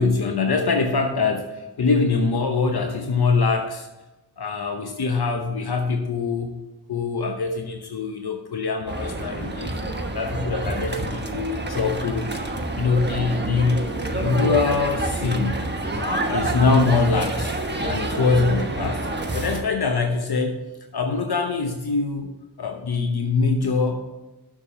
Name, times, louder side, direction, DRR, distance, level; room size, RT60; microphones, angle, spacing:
voice 1, 0.0-3.9 4.4-6.6 6.9-9.7 10.1-12.4 12.8-13.8 14.1-15.6 16.0-19.1 19.3-20.6 20.9-22.3 22.6-24.0, left 4 dB, 65° left, 4 dB, 0.9 m, -23 dB
sound 1, 8.9-19.6, right 2 dB, 25° right, 1.2 m, -28 dB
7.0 x 7.0 x 5.9 m, 1.1 s
wide cardioid pair, 65°, 40 cm